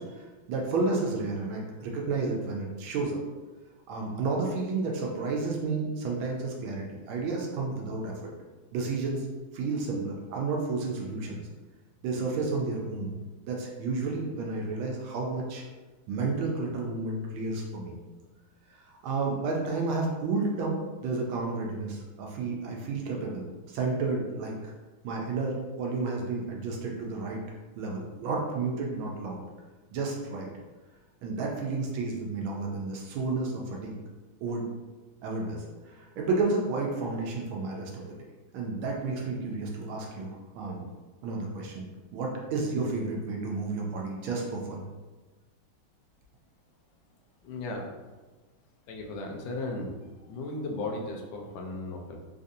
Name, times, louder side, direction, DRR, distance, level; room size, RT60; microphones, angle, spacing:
voice 1, 0.0-3.2 3.9-8.3 8.7-9.3 9.5-11.4 12.0-13.1 13.5-15.6 16.1-17.9 18.7-24.7 25.0-27.4 27.8-29.4 29.9-30.5 31.2-33.9 34.4-34.7 35.2-38.2 38.5-40.8 41.2-41.9 42.1-44.8, right 3 dB, 85° right, -1 dB, 1.4 m, -31 dB
voice 2, 47.4-47.9 48.9-52.2, left 2 dB, 75° left, 1 dB, 1.3 m, -36 dB
4.0 x 2.5 x 2.6 m, 1.2 s
omnidirectional pair, 2.2 m